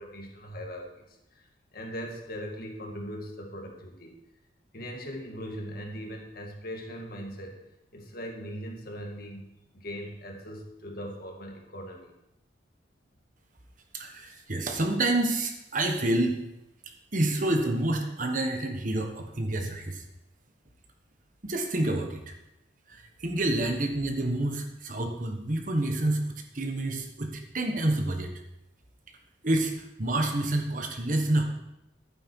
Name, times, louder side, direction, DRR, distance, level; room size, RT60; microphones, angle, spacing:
voice 1, 0.0-4.2 4.7-7.6 7.9-12.1, equal, 50° left, 1 dB, 2.0 m, -40 dB
voice 2, 13.9-16.4 17.1-20.0 21.4-22.3 22.9-28.3 29.4-29.7 30.0-31.4, right 1 dB, 45° right, 4 dB, 1.3 m, -28 dB
11.5 x 9.1 x 4.7 m, 0.88 s
head